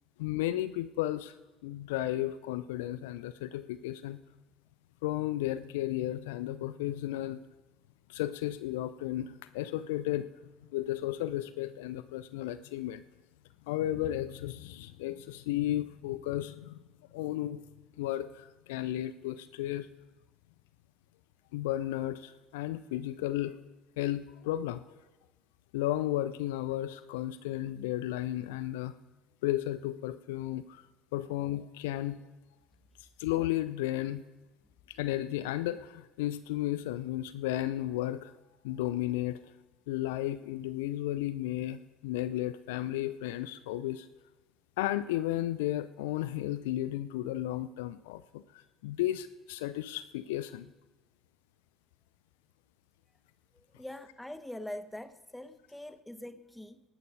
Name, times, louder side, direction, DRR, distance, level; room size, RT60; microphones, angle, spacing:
voice 1, 0.2-1.3 1.6-4.2 5.0-7.4 8.1-10.3 10.7-13.0 13.7-16.8 17.1-17.6 18.0-19.9 21.5-23.5 24.0-24.8 25.7-28.9 29.4-30.8 31.1-32.2 33.2-34.2 34.9-38.3 38.6-39.4 39.9-44.1 44.8-48.4 48.8-50.7, left 14 dB, 70° left, 14 dB, 0.5 m, -33 dB
voice 2, 53.5-56.8, left 1 dB, 5° left, 12 dB, 1.2 m, -44 dB
19.0 x 10.5 x 5.3 m, 1.1 s
figure-of-eight pair, 60°, 0 cm